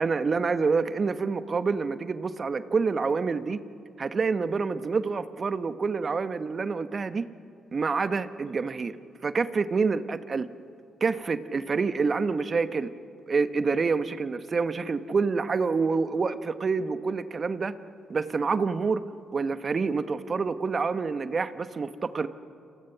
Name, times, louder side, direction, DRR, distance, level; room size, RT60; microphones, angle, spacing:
voice 1, 0.0-3.6 4.0-7.3 7.7-8.9 9.2-10.5 11.0-12.9 13.3-17.7 18.1-19.0 19.3-22.3, right 4 dB, 45° right, 11 dB, 1.3 m, -27 dB
29.0 x 27.5 x 6.0 m, 2.5 s
hypercardioid pair, 45°, 0 cm